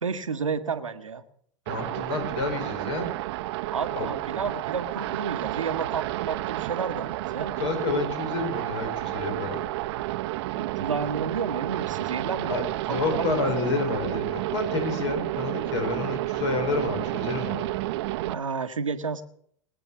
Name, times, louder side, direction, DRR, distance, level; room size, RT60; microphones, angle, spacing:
voice 1, 0.0-1.2 3.7-7.5 10.6-13.4 18.2-19.2, right 5 dB, 85° right, 10 dB, 1.0 m, -31 dB
voice 2, 1.7-3.1 4.0-4.1 7.5-9.6 12.5-17.7, left 3 dB, 65° left, 5 dB, 4.9 m, -29 dB
sound 1, 1.7-18.3, right 16 dB, 55° right, 0.7 m, -31 dB
20.0 x 8.7 x 7.1 m, 0.65 s
hypercardioid pair, 95°, 16 cm